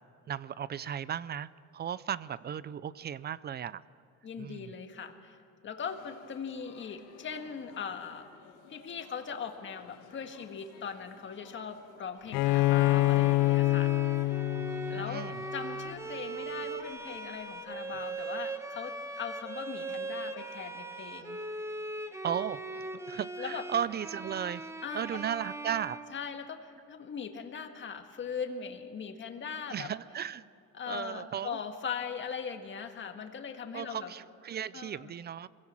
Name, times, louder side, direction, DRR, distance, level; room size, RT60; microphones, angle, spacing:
voice 1, 0.3-3.8 4.4-4.7 14.6-15.4 22.2-24.6 24.9-26.0 29.7-30.4 30.9-31.6 33.7-35.5, right 9 dB, 35° right, 18 dB, 0.4 m, -36 dB
voice 2, 4.2-5.4 5.6-8.3 8.7-13.9 14.9-15.3 15.5-21.4 23.4-23.6 24.8-25.2 26.1-29.9 30.7-34.1 34.7-35.1, left 6 dB, 40° left, 6 dB, 1.7 m, -40 dB
sound 1, 5.9-17.2, left 8 dB, 70° left, 1.7 m, -56 dB
Bowed string instrument, 12.3-15.9, left 17 dB, 90° left, 0.5 m, -27 dB
Bowed string instrument 2, 12.4-26.7, right 2 dB, 10° right, 1.2 m, -40 dB
23.0 x 16.5 x 7.5 m, 2.6 s
cardioid pair, 120°, 31 cm